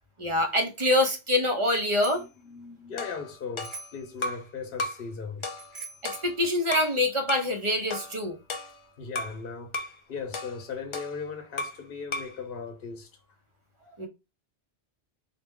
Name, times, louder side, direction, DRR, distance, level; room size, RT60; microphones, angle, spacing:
voice 1, 0.2-2.2 6.2-8.4 14.0-14.1, left 1 dB, 30° right, 0.8 m, -25 dB
Bicycle bell, 1.7-2.4 3.6-4.1 5.4-6.2, right 4 dB, 50° right, 1.1 m, -44 dB
voice 2, 2.1-5.6 9.0-13.1, left 5 dB, 55° left, 1.0 m, -38 dB
sound 1, 3.0-4.5 4.8-5.1 5.4-7.0 7.3-7.5 7.9-9.4 9.7-10.0 10.3-11.9 12.1-12.4, left 2 dB, 40° left, 0.4 m, -36 dB
4.2 x 2.4 x 3.6 m
omnidirectional pair, 1.1 m